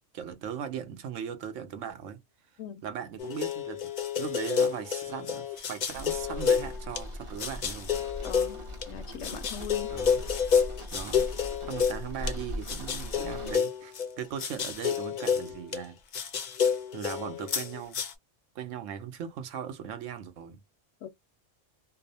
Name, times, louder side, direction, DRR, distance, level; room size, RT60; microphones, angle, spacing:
voice 1, 0.1-2.2 2.8-8.0 9.9-10.2 10.9-11.2 11.6-16.0 16.9-18.0 18.5-20.6, right 8 dB, 75° right, 1.0 m, -38 dB
sound 1, 3.2-7.0 7.4-8.9 9.2-12.3 12.7-15.8 16.1-18.1, left 7 dB, 55° left, 0.5 m, -29 dB
sound 2, 5.9-13.6, left 1 dB, 35° right, 0.6 m, -40 dB
voice 2, 8.2-9.9 21.0-21.1, left 8 dB, 80° left, 0.9 m, -41 dB
2.7 x 2.0 x 2.6 m
omnidirectional pair, 1.3 m